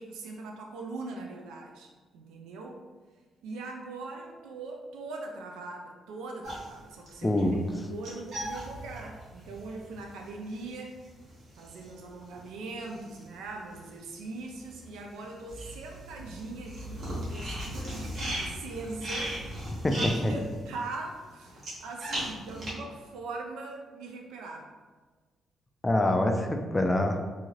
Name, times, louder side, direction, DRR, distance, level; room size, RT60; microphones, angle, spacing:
voice 1, 0.0-2.8 3.4-11.0 11.6-19.4 19.9-24.7, right 3 dB, 90° right, 1 dB, 0.3 m, -41 dB
sound 1, 6.4-13.9 14.2-22.7, equal, 55° right, 1.0 m, -38 dB
voice 2, 7.2-7.6 19.8-20.4 25.8-27.2, left 1 dB, 15° left, 4 dB, 0.3 m, -25 dB
2.7 x 2.3 x 3.1 m, 1.4 s
cardioid pair, 90°, 0 cm